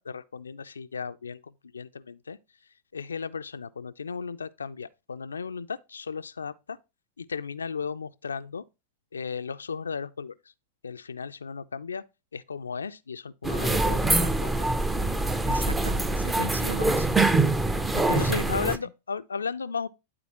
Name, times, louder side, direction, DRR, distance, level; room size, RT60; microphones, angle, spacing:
voice 1, 0.0-2.4 2.9-6.8 7.2-8.6 9.1-10.3 10.8-12.0 12.3-14.7 17.3-17.5 18.1-19.9, left 5 dB, 75° left, 0.3 m, -35 dB
sound 1, 13.4-18.8, right 2 dB, 10° right, 0.5 m, -24 dB
voice 2, 15.4-17.1 17.9-18.6, right 1 dB, 80° right, 0.4 m, -35 dB
11.0 x 4.1 x 2.9 m
figure-of-eight pair, 90°, 0 cm